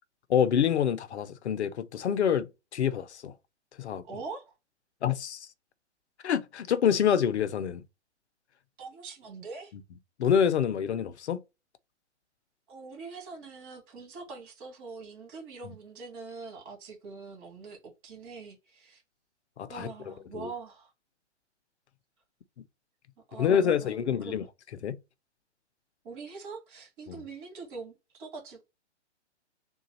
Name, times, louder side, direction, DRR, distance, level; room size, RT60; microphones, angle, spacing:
voice 1, 0.3-3.3 3.8-4.0 5.0-5.5 6.2-7.8 10.2-11.4 15.6-15.7 19.6-20.5 23.4-24.4 24.8-25.0 27.1-27.2, left 8 dB, 65° left, 0.6 m, -27 dB
voice 2, 4.0-4.5 8.8-9.7 12.7-19.0 19.7-20.9 23.3-24.4 26.0-28.6, right 4 dB, 45° right, 2.0 m, -43 dB
3.8 x 2.3 x 4.2 m
hypercardioid pair, 125°, 35 cm